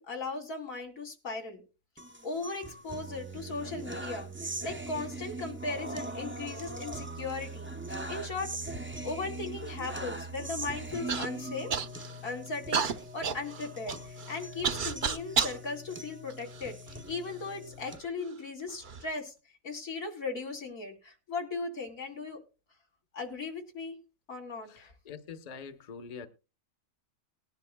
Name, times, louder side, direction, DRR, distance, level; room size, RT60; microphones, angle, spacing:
voice 1, 0.0-1.6 2.2-11.7 12.2-12.9 13.1-19.3 19.6-22.4 23.1-24.0 24.3-24.9, left 3 dB, 85° left, 3.1 m, -38 dB
sound 1, 2.0-18.0, right 2 dB, 15° right, 0.5 m, -41 dB
Human voice / Cough, 11.1-11.3 11.7-12.2 12.7-15.6 16.3-17.1 17.9-18.0 18.7-19.0, right 6 dB, 45° right, 0.7 m, -31 dB
voice 2, 24.7-26.3, left 6 dB, 35° left, 0.9 m, -44 dB
20.0 x 10.5 x 2.2 m
omnidirectional pair, 1.4 m